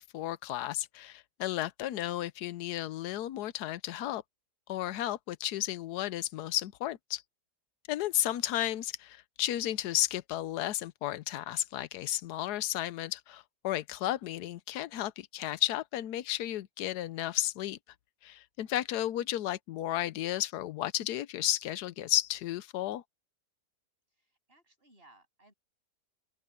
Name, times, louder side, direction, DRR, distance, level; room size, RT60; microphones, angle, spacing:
voice 1, 0.0-4.2 4.7-7.2 7.9-17.8 18.2-23.0, left 13 dB, 75° left, 1.2 m, -33 dB
voice 2, 24.1-25.5, right 2 dB, 35° right, 8.2 m, -62 dB
open air
omnidirectional pair, 1.8 m